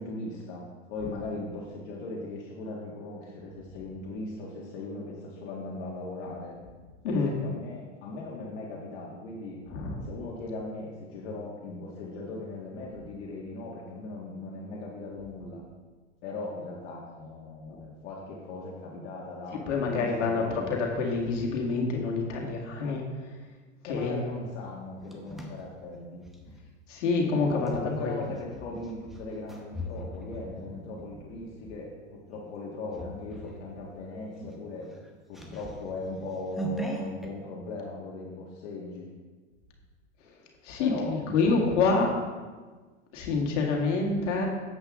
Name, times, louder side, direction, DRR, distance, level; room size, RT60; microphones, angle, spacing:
voice 1, 0.0-6.6 7.1-9.6 9.9-15.6 16.2-20.7 23.9-26.3 27.5-34.9 35.3-39.1 40.8-41.7, left 2 dB, 65° left, -4 dB, 1.7 m, -39 dB
voice 2, 9.7-10.1 17.7-17.8 19.5-23.1 23.8-24.3 26.9-28.2 40.3-40.4 40.6-42.2 43.1-44.5, left 4 dB, 80° left, 0 dB, 1.8 m, -27 dB
sound 1, 24.6-26.6 27.6-31.8 32.3-32.6 32.9-33.6 33.9-34.0 34.3-37.3, right 1 dB, ahead, 0.8 m, -40 dB
7.9 x 7.8 x 3.6 m, 1.4 s
supercardioid pair, 130°, 36 cm